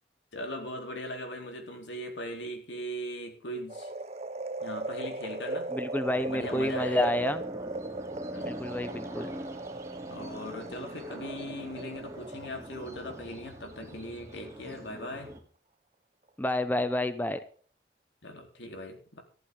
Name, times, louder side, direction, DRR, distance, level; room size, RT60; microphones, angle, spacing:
voice 1, 0.3-3.9 4.6-5.8 6.3-7.1 8.3-8.6 10.1-15.3 18.2-19.2, equal, 90° left, 3 dB, 3.8 m, -39 dB
sound 1, 3.7-14.0 14.4-14.5, right 2 dB, 35° right, 0.6 m, -38 dB
voice 2, 5.7-7.4 8.4-9.3 16.4-17.4, left 1 dB, 10° left, 11 dB, 0.7 m, -29 dB
sound 2, 6.1-15.4, equal, 15° right, 2.6 m, -44 dB
14.5 x 13.0 x 3.9 m, 0.42 s
head